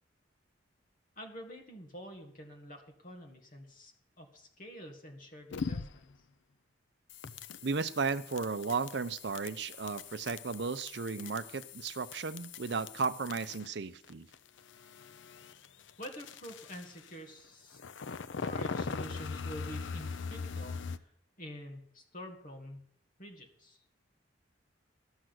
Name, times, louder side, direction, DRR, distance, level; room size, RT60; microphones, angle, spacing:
voice 1, 1.2-6.0 16.0-17.8 18.4-20.8 21.4-22.8 23.2-23.8, equal, 45° left, 3 dB, 2.0 m, -47 dB
sound 1, 5.5-6.2 7.1-13.8 14.0-17.2 17.7-21.0, left 5 dB, 70° left, 0.6 m, -41 dB
voice 2, 7.6-14.3, right 4 dB, 60° right, 14 dB, 0.6 m, -34 dB
13.0 x 6.2 x 7.8 m, 0.69 s
head